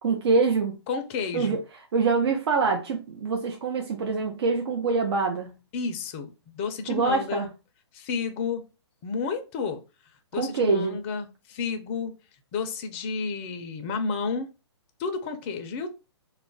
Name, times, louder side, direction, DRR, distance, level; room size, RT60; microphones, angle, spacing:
voice 1, 0.0-0.8 1.3-1.6 1.9-5.5 6.9-7.5 10.4-11.0, right 4 dB, 65° right, 0.5 m, -25 dB
voice 2, 0.9-1.6 5.7-7.5 7.9-8.7 9.0-9.8 10.3-12.1 12.5-14.5 15.0-15.9, left 5 dB, 25° left, 0.4 m, -31 dB
2.3 x 2.0 x 3.7 m
hypercardioid pair, 145°, 15 cm